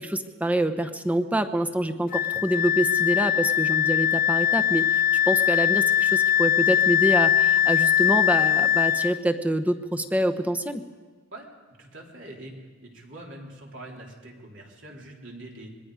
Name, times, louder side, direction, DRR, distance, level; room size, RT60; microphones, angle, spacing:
voice 1, 0.0-10.8, right 1 dB, 5° right, 7 dB, 0.9 m, -26 dB
Wind instrument woodwind instrument, 2.1-9.2, left 10 dB, 45° left, 0.5 m, -21 dB
voice 2, 11.8-12.5 12.8-15.7, right 1 dB, 65° right, -2 dB, 3.6 m, -43 dB
25.5 x 20.5 x 4.9 m, 1.4 s
head